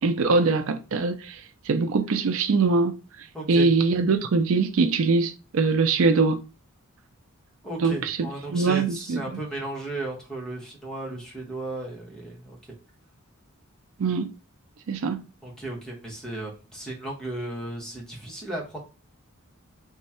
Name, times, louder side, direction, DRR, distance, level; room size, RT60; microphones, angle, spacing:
voice 1, 0.0-6.4 7.8-9.4 14.0-14.3 14.9-15.2, right 4 dB, 65° right, 0.4 m, -23 dB
voice 2, 3.3-3.7 7.6-12.6 15.4-18.8, right 2 dB, 5° left, 1.0 m, -35 dB
3.1 x 2.3 x 4.2 m
head